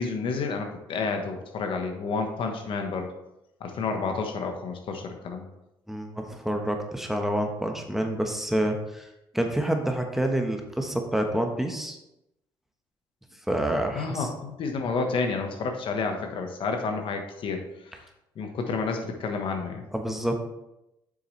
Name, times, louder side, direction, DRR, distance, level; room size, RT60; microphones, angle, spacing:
voice 1, 0.0-3.1 3.6-5.5 13.9-18.0 18.4-19.9, left 4 dB, 65° left, 4 dB, 1.2 m, -30 dB
voice 2, 5.9-9.1 9.3-12.0 13.5-14.3 19.9-20.5, right 1 dB, 5° right, 3 dB, 1.2 m, -28 dB
7.6 x 6.4 x 3.2 m, 0.89 s
supercardioid pair, 75°, 10 cm